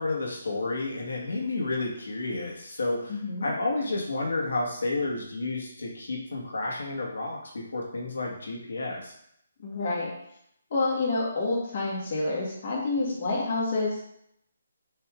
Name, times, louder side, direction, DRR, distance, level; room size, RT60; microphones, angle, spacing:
voice 1, 0.0-9.1, left 2 dB, 80° left, -1 dB, 1.8 m, -31 dB
voice 2, 3.1-3.5 9.6-10.1 10.7-14.0, left 3 dB, 30° left, -5 dB, 1.7 m, -28 dB
8.3 x 3.5 x 3.7 m, 0.73 s
hypercardioid pair, 180°, 0 cm